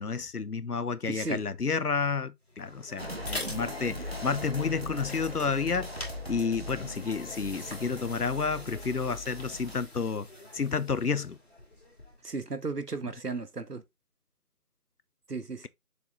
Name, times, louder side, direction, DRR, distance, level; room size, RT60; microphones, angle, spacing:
voice 1, 0.0-5.9 6.3-10.3 10.5-11.4, left 5 dB, 75° left, 0.8 m, -30 dB
voice 2, 1.1-1.4 12.2-13.8 15.3-15.7, right 4 dB, 80° right, 1.3 m, -35 dB
sound 1, 2.5-12.3, left 1 dB, 40° left, 2.6 m, -45 dB
sound 2, 3.0-9.8, left 1 dB, 40° right, 1.1 m, -40 dB
6.9 x 4.5 x 3.8 m
figure-of-eight pair, 175°, 47 cm